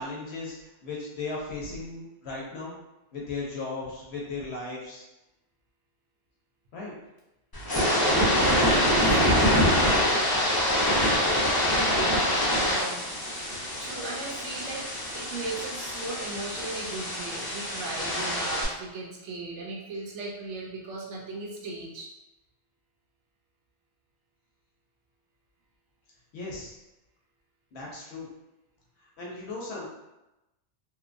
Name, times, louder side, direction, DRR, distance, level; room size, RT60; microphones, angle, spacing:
voice 1, 0.0-2.8 3.1-5.0 6.7-7.0 26.3-26.7 27.7-28.3 29.2-29.9, left 3 dB, 70° left, -4 dB, 0.9 m, -36 dB
sound 1, 7.5-18.6, equal, 30° left, 0.5 m, -25 dB
voice 2, 8.9-9.8 12.0-14.9 15.1-22.1, right 3 dB, 85° right, -2 dB, 0.9 m, -37 dB
2.8 x 2.2 x 2.4 m, 0.97 s
omnidirectional pair, 1.2 m